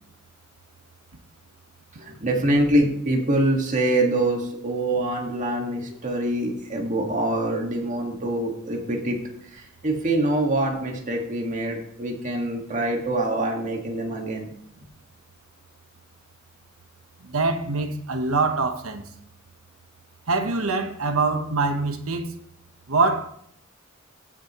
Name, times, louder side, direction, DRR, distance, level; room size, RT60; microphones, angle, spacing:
voice 1, 2.0-9.2 9.5-14.5, right 1 dB, 35° right, 1.8 m, -25 dB
voice 2, 17.2-19.0 20.3-22.3 22.9-23.3, right 3 dB, 85° right, 1.1 m, -24 dB
15.5 x 6.2 x 3.0 m
head